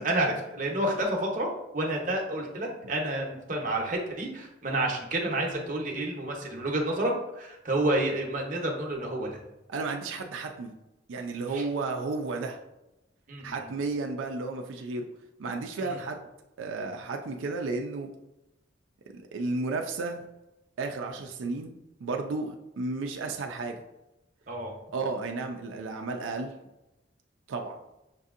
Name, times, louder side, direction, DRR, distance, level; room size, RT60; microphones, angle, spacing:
voice 1, 0.0-1.5 1.7-9.4 11.5-11.6 13.3-13.6 15.8-15.9 24.5-24.7, right 1 dB, 40° right, 0 dB, 0.7 m, -29 dB
voice 2, 9.7-10.7 11.1-12.6 13.4-15.1 15.4-16.3 16.6-18.1 19.1-20.3 20.8-21.7 22.0-23.8 24.9-26.5 27.5-27.8, right 3 dB, 85° right, 3 dB, 0.4 m, -33 dB
5.9 x 2.6 x 2.4 m, 0.93 s
head